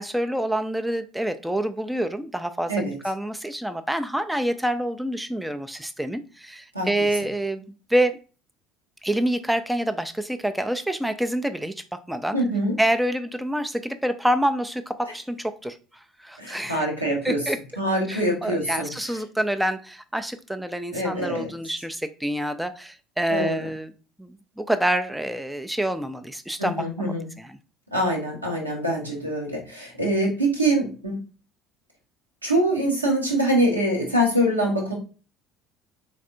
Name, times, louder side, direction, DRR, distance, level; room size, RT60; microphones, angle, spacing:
voice 1, 0.0-2.7 3.0-8.2 9.0-12.4 12.8-16.9 17.2-17.6 18.1-23.9 24.2-27.1 27.4-27.6, right 1 dB, 5° right, 10 dB, 0.3 m, -27 dB
voice 2, 12.3-12.7 15.0-15.1 16.4-17.4 17.8-18.9 20.9-21.5 23.3-23.7 26.6-27.2 27.9-31.2 32.4-34.9, right 1 dB, 85° right, -2 dB, 0.9 m, -24 dB
4.2 x 3.2 x 2.5 m, 0.35 s
figure-of-eight pair, 60°, 0 cm